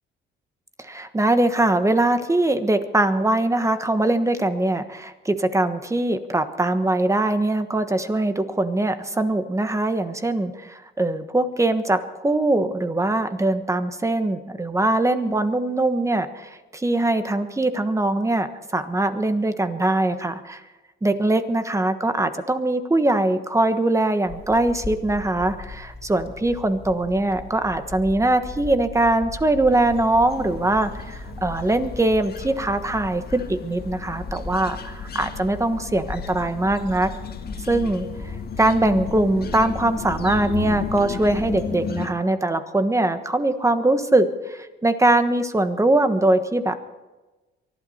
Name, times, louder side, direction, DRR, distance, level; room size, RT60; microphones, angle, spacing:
voice 1, 0.8-20.6 21.0-37.1 37.7-46.8, right 2 dB, 15° right, 9 dB, 1.3 m, -22 dB
sound 1, 24.3-41.6, left 3 dB, 30° left, 2.7 m, -38 dB
sound 2, 29.7-42.1, left 7 dB, 50° left, 1.8 m, -34 dB
24.0 x 12.0 x 4.3 m, 1.1 s
cardioid pair, 90°, 20 cm